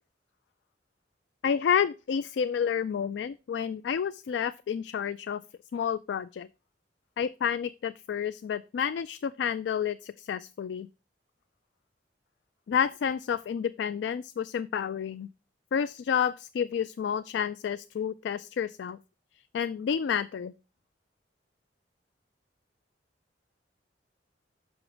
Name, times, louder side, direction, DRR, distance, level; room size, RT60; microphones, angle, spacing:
voice 1, 1.4-5.4 5.7-6.5 7.2-10.9 12.7-15.3 15.7-19.0 19.5-20.5, left 7 dB, 75° left, 0.3 m, -30 dB
6.2 x 6.0 x 4.9 m
head